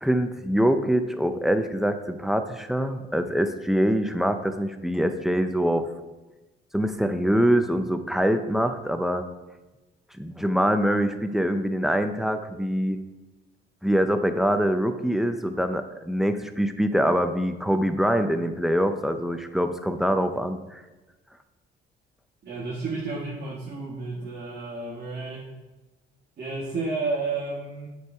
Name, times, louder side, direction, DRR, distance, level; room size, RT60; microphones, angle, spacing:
voice 1, 0.0-5.9 6.7-9.2 10.2-13.0 13.8-20.8, equal, ahead, 8 dB, 0.6 m, -24 dB
voice 2, 22.4-25.5 26.4-27.9, right 3 dB, 55° right, -5 dB, 1.6 m, -31 dB
8.1 x 4.7 x 4.7 m, 1.1 s
cardioid pair, 90°, 20 cm